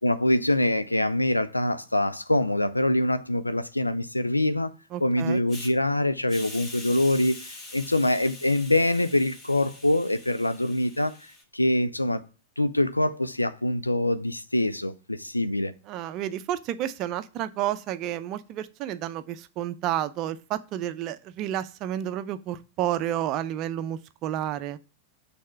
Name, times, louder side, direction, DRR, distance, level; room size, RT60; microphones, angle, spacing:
voice 1, 0.0-4.7 5.0-11.1 11.5-12.2 12.6-15.7, left 1 dB, 85° left, 0.4 m, -24 dB
voice 2, 4.9-5.4 15.9-24.8, right 12 dB, 40° right, 0.5 m, -31 dB
Hiss, 5.5-5.7 6.3-11.4, left 2 dB, 30° left, 1.6 m, -44 dB
6.4 x 3.5 x 5.7 m
figure-of-eight pair, 90°, 0 cm